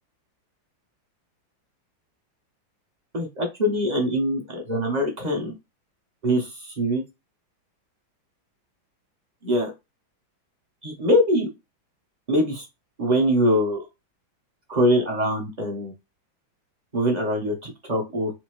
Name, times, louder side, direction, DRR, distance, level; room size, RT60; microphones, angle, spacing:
voice 1, 3.1-5.5 6.2-6.5 6.8-7.0 9.4-9.7 10.8-11.5 12.3-12.6 13.0-13.8 14.7-15.9 16.9-18.4, equal, 40° right, 1 dB, 0.6 m, -23 dB
4.3 x 2.7 x 3.0 m, 0.22 s
omnidirectional pair, 2.2 m